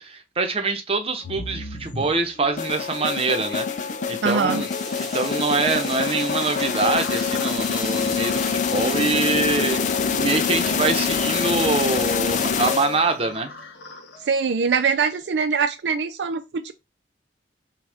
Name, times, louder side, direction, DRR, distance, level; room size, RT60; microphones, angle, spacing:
voice 1, 0.0-4.7 5.0-9.8 10.1-13.5, right 3 dB, 35° right, 0.8 m, -24 dB
sound 1, 1.2-15.3, left 2 dB, 80° left, 1.0 m, -39 dB
sound 2, 2.6-13.2, left 6 dB, 45° left, 0.4 m, -25 dB
voice 2, 4.2-4.7 14.3-16.7, right 5 dB, 75° right, 0.4 m, -23 dB
sound 3, 4.7-12.9, equal, ahead, 1.4 m, -38 dB
6.2 x 2.4 x 3.4 m
head